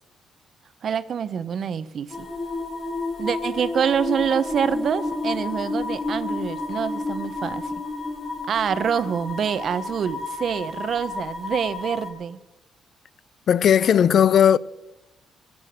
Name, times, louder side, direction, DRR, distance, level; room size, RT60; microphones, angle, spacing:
voice 1, 0.8-2.3 3.2-7.8 8.5-12.4, right 7 dB, 55° right, 0.8 m, -26 dB
sound 1, 2.1-12.1, left 3 dB, 35° left, 2.0 m, -31 dB
voice 2, 13.5-14.6, left 9 dB, 60° left, 0.4 m, -16 dB
14.5 x 9.6 x 6.6 m
cardioid pair, 90°, 0 cm